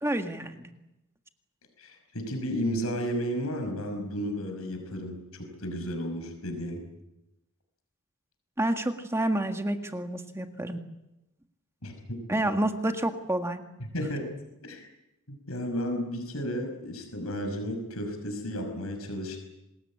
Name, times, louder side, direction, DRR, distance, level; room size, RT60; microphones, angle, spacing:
voice 1, 0.0-0.7 8.6-10.8 12.3-13.6, right 1 dB, 10° right, 6 dB, 1.7 m, -29 dB
voice 2, 1.8-5.1 5.6-6.8 11.8-12.2 13.9-14.3 14.6-14.9 15.3-19.4, equal, 75° left, 5 dB, 5.7 m, -33 dB
26.5 x 20.5 x 8.6 m, 0.93 s
head